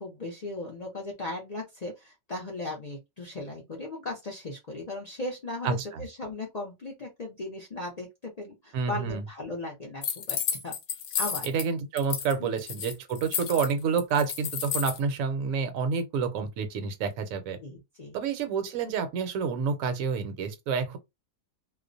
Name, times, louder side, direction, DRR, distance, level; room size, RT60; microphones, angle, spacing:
voice 1, 0.0-10.4 10.6-10.7 11.2-11.5 12.4-12.5 17.6-18.2, left 2 dB, 55° left, 0.4 m, -37 dB
voice 2, 5.6-6.0 8.7-9.2 11.4-17.6 18.1-21.0, right 5 dB, 75° right, 1.0 m, -29 dB
sound 1, 10.0-11.7 12.0-12.3 12.6-15.0, left 7 dB, 70° left, 0.9 m, -31 dB
2.4 x 2.0 x 2.5 m
omnidirectional pair, 1.5 m